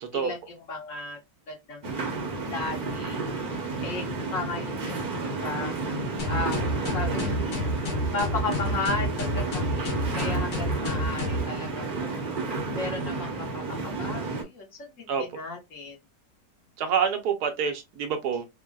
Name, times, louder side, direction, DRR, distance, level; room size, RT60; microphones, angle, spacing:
voice 1, 0.0-0.3 15.1-15.2 16.8-18.5, right 7 dB, 75° right, 1.2 m, -27 dB
voice 2, 0.7-1.2 1.5-1.9 2.5-3.2 3.8-6.0 6.3-6.6 6.9-7.5 8.1-12.2 12.7-13.6 14.0-16.0, left 3 dB, 55° left, 1.2 m, -35 dB
sound 1, 1.8-14.4, right 3 dB, 40° right, 0.8 m, -31 dB
sound 2, 6.2-11.5, equal, 85° left, 1.5 m, -29 dB
3.8 x 2.1 x 2.2 m
omnidirectional pair, 1.8 m